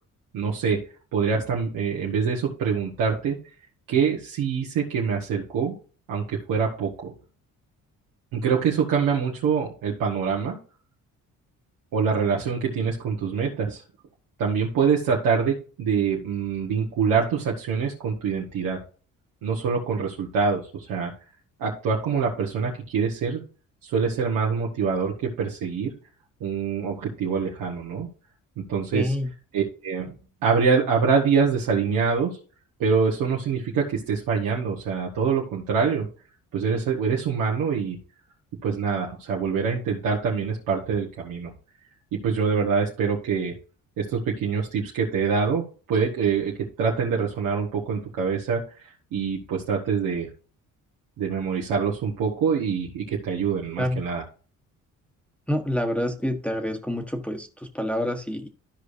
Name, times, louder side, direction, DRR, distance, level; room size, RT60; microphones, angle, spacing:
voice 1, 0.3-0.8 1.1-3.4 3.9-5.7 6.1-7.1 8.3-10.6 11.9-13.8 14.4-18.8 19.4-21.1 21.6-23.4 23.8-25.9 26.4-28.1 28.6-29.1 29.5-30.1 30.4-32.4 32.8-36.1 36.5-38.0 38.6-41.5 42.1-43.5 44.0-48.6 49.1-50.3 51.2-54.2, right 6 dB, 90° right, -3 dB, 1.5 m, -25 dB
voice 2, 28.9-29.3 53.8-54.0 55.5-58.5, left 1 dB, 5° left, 2 dB, 1.1 m, -27 dB
13.5 x 4.9 x 2.7 m, 0.38 s
cardioid pair, 90°, 33 cm